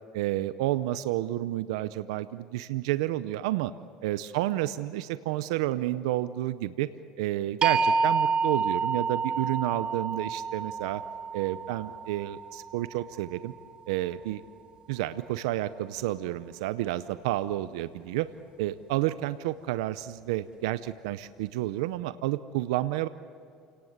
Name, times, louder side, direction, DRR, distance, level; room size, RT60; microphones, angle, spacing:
voice 1, 0.1-3.7 4.0-6.9 7.2-11.0 11.3-13.5 13.9-14.4 14.9-18.3 18.6-23.1, right 15 dB, 90° right, 14 dB, 0.6 m, -30 dB
sound 1, 7.6-13.6, right 5 dB, 35° right, 1.7 m, -29 dB
28.5 x 18.5 x 8.1 m, 2.2 s
supercardioid pair, 100°, 3 cm